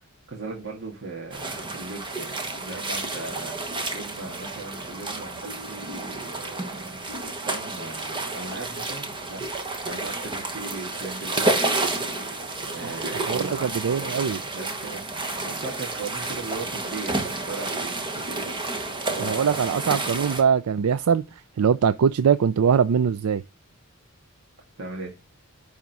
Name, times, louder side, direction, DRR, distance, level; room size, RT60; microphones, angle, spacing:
voice 1, 0.0-19.8 24.8-25.2, right 3 dB, 60° right, 1.7 m, -38 dB
sound 1, 1.3-20.4, right 2 dB, 25° right, 1.3 m, -30 dB
voice 2, 13.1-14.4 19.2-23.4, right 7 dB, 90° right, 0.4 m, -22 dB
10.5 x 3.6 x 5.4 m
head